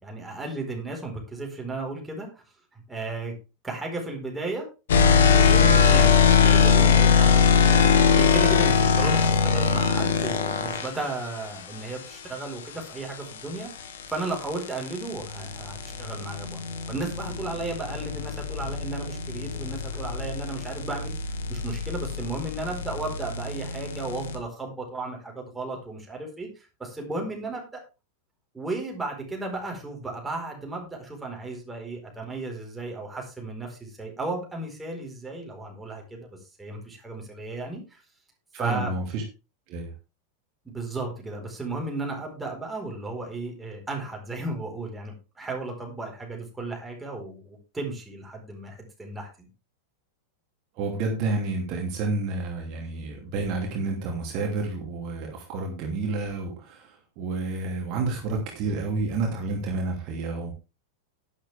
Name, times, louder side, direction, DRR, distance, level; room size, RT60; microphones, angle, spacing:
voice 1, 0.0-2.4 2.7-3.3 3.6-4.7 5.3-27.8 28.5-38.0 38.6-39.0 40.6-49.5, right 2 dB, 10° right, 0 dB, 4.5 m, -34 dB
sound 1, 4.9-10.9 13.4-24.4, left 6 dB, 60° left, 1.9 m, -22 dB
voice 2, 38.5-39.2 39.7-39.9 50.8-60.5, right 3 dB, 40° right, 1 dB, 2.8 m, -30 dB
11.5 x 10.0 x 3.5 m, 0.30 s
figure-of-eight pair, 90°, 0 cm